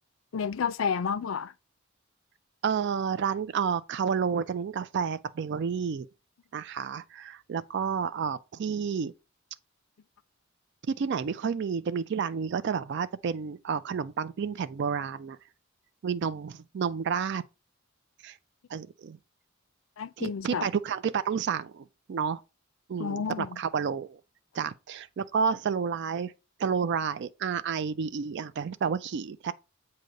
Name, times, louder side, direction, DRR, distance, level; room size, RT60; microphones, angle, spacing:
voice 1, 0.3-1.5 20.0-20.7 23.0-23.6, left 6 dB, 75° left, 0.4 m, -30 dB
voice 2, 2.6-6.1 6.5-9.1 10.9-15.4 16.0-17.4 18.2-18.4 18.7-19.2 20.2-22.4 22.9-24.2 24.5-26.3 26.6-29.5, right 6 dB, 60° right, 0.4 m, -30 dB
7.7 x 2.8 x 5.1 m
head